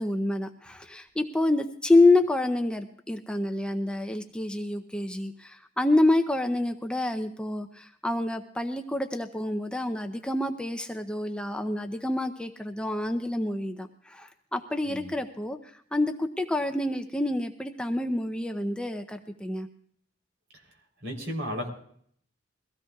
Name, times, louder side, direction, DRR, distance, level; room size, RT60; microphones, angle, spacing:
voice 1, 0.0-15.6 15.9-19.7, left 2 dB, 5° left, 6 dB, 0.6 m, -27 dB
voice 2, 21.0-21.7, equal, 70° right, 1 dB, 3.5 m, -33 dB
22.5 x 16.0 x 2.3 m, 0.63 s
head